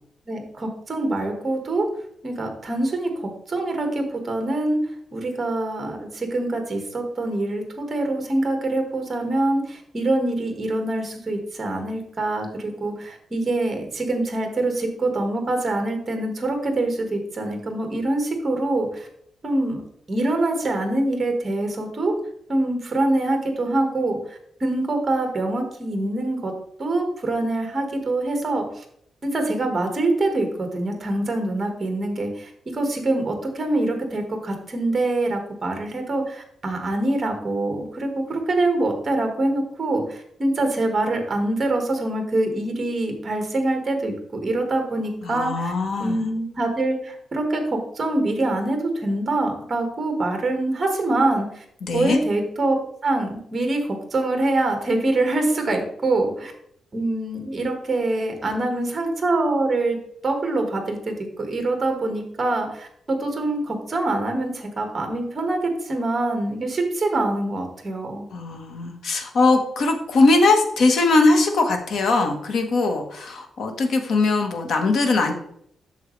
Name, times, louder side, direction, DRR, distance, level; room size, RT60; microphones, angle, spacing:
voice 1, 0.3-1.9 2.2-4.8 5.1-19.1 19.4-19.8 20.1-22.2 22.5-26.5 26.8-28.8 29.2-45.7 46.0-51.6 51.9-52.8 53.0-56.5 56.9-60.0 60.2-68.3, right 2 dB, 25° right, 4 dB, 1.5 m, -24 dB
voice 2, 45.2-46.2 51.8-52.2 68.3-75.3, left 3 dB, 65° left, 5 dB, 1.2 m, -20 dB
8.4 x 6.5 x 3.2 m, 0.69 s
wide cardioid pair, 155°, 0 cm